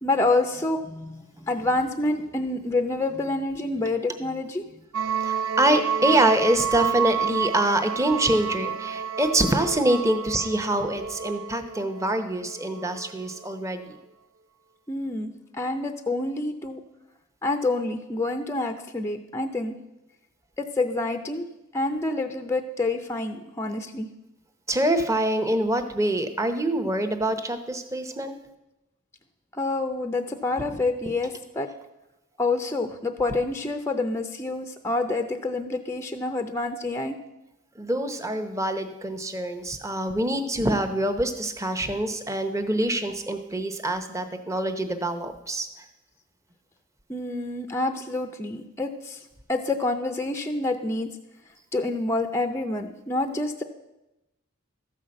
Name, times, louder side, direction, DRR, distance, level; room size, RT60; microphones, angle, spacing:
voice 1, 0.0-4.7 14.9-16.8 17.4-19.8 20.6-21.5 21.7-24.1 29.5-31.7 32.4-37.2 47.1-51.1 51.7-53.6, left 2 dB, 10° left, 7 dB, 0.5 m, -27 dB
sound 1, 4.9-13.1, right 7 dB, 85° right, 0.5 m, -30 dB
voice 2, 5.2-14.0 24.7-28.3 37.8-45.7, right 1 dB, 15° right, 8 dB, 0.8 m, -25 dB
13.0 x 5.7 x 7.6 m, 0.94 s
head